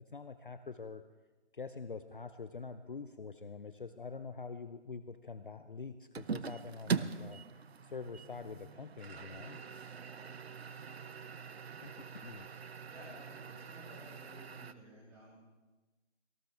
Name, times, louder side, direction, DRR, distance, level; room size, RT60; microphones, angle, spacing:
voice 1, 0.1-1.0 1.5-7.4 7.8-9.6 11.8-12.5, left 4 dB, 45° left, 10 dB, 0.6 m, -45 dB
sound 1, 6.1-14.7, right 6 dB, 60° right, 0.7 m, -42 dB
voice 2, 12.8-15.4, equal, 5° right, -7 dB, 3.1 m, -55 dB
19.0 x 18.0 x 3.4 m, 1.1 s
figure-of-eight pair, 170°, 36 cm